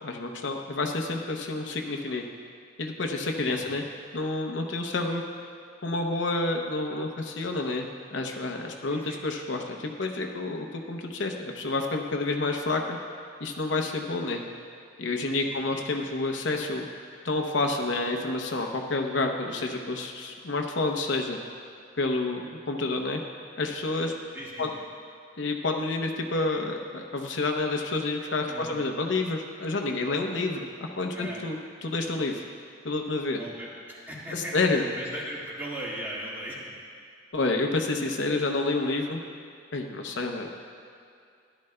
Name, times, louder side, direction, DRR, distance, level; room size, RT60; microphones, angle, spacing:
voice 1, 0.0-2.2 2.8-3.8 4.1-5.2 5.8-13.0 13.4-14.4 15.0-16.9 17.2-21.4 22.0-23.2 23.6-24.1 24.6-24.7 25.4-30.7 31.0-32.4 32.8-33.4 34.3-34.8 37.3-39.2 39.7-40.5, left 2 dB, 70° left, 3 dB, 0.8 m, -29 dB
voice 2, 3.4-3.8 8.9-9.2 15.3-15.7 24.3-24.8 28.5-28.8 31.1-31.4 33.4-36.8, right 1 dB, 10° right, -6 dB, 1.8 m, -39 dB
14.0 x 11.0 x 2.2 m, 2.4 s
head